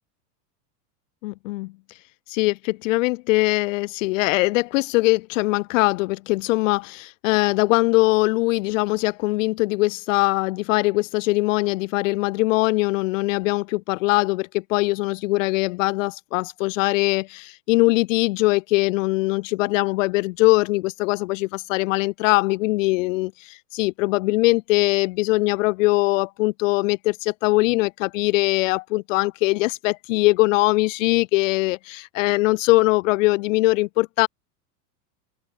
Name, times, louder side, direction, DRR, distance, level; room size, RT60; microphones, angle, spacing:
voice 1, 1.2-1.7 2.3-34.3, left 22 dB, 55° left, 0.6 m, -21 dB
open air
supercardioid pair, 140°, 48 cm